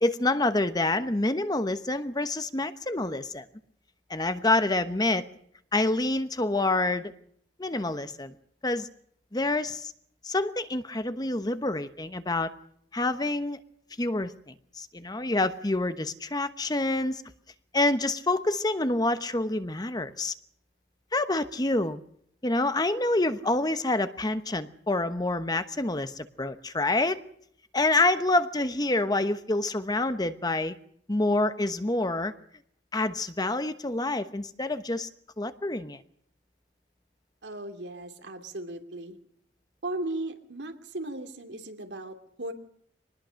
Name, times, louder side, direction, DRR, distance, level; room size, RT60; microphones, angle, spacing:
voice 1, 0.0-3.4 4.1-5.3 5.7-7.1 7.6-8.3 8.6-8.9 9.3-9.9 10.2-12.5 12.9-13.6 14.0-17.2 17.7-20.3 21.1-22.0 22.4-27.2 27.7-30.8 31.1-32.3 32.9-35.1 35.4-36.0, left 2 dB, 25° left, 11 dB, 1.0 m, -27 dB
voice 2, 37.4-39.2 39.8-42.5, right 2 dB, 90° right, 5 dB, 2.9 m, -36 dB
24.0 x 20.0 x 6.5 m, 0.66 s
head